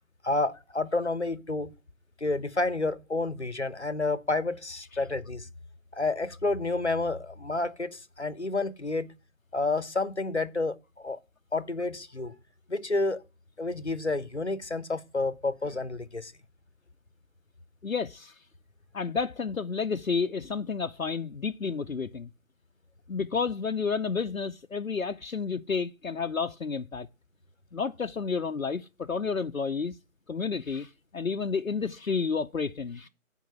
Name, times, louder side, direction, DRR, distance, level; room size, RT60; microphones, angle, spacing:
voice 1, 0.2-1.7 2.2-5.5 5.9-9.1 9.5-11.2 11.5-12.4 12.7-13.2 13.6-16.3, left 2 dB, 55° left, 1.1 m, -30 dB
voice 2, 17.8-18.4 18.9-22.3 23.1-27.1 27.7-29.9 30.3-33.1, left 5 dB, 80° left, 0.8 m, -31 dB
11.0 x 4.5 x 5.7 m
figure-of-eight pair, 175°, 40 cm